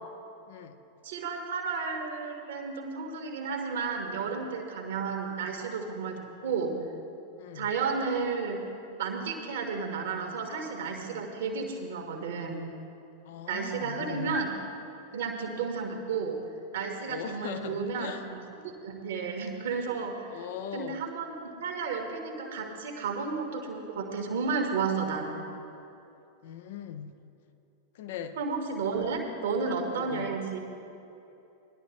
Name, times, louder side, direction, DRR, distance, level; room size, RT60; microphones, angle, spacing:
voice 1, 1.0-6.7 7.6-8.7 9.0-12.6 13.5-14.6 15.1-16.4 16.7-20.4 20.7-25.4 28.4-30.6, right 5 dB, 60° right, 2 dB, 1.8 m, -32 dB
voice 2, 7.4-7.7 13.3-14.4 17.1-18.2 20.3-21.0 26.4-27.1 27.9-28.4 29.9-30.3, left 8 dB, 55° left, 9 dB, 0.8 m, -39 dB
20.0 x 11.5 x 3.2 m, 2.8 s
figure-of-eight pair, 90°, 0 cm